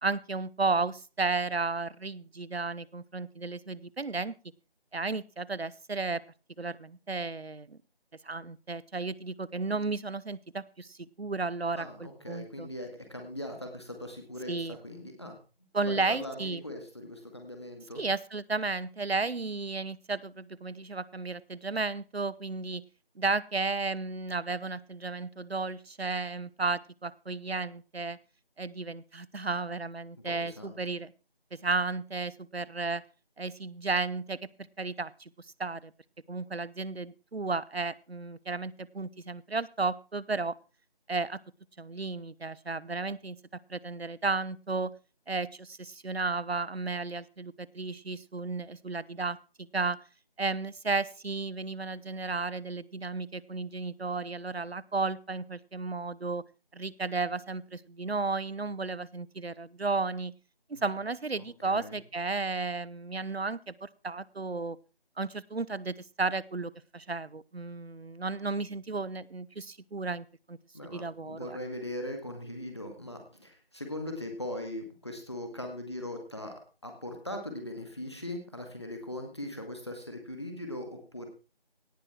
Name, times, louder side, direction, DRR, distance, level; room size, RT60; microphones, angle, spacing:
voice 1, 0.0-4.4 4.9-6.2 6.6-7.8 8.2-12.7 14.5-14.8 15.7-16.6 18.0-22.8 23.2-28.2 28.6-31.1 31.5-33.0 33.4-34.4 34.8-35.3 35.6-35.9 36.3-40.6 41.1-41.4 41.8-43.4 43.7-44.9 45.3-50.0 50.4-56.4 56.7-60.3 60.7-64.8 65.2-70.6 70.9-71.6, right 3 dB, 90° right, 21 dB, 0.9 m, -33 dB
voice 2, 11.8-15.4 15.8-18.0 30.2-30.8 60.7-61.0 61.4-62.0 70.7-76.5 76.8-81.3, left 1 dB, 25° left, 4 dB, 2.1 m, -40 dB
17.5 x 9.7 x 4.5 m, 0.34 s
figure-of-eight pair, 175°, 30 cm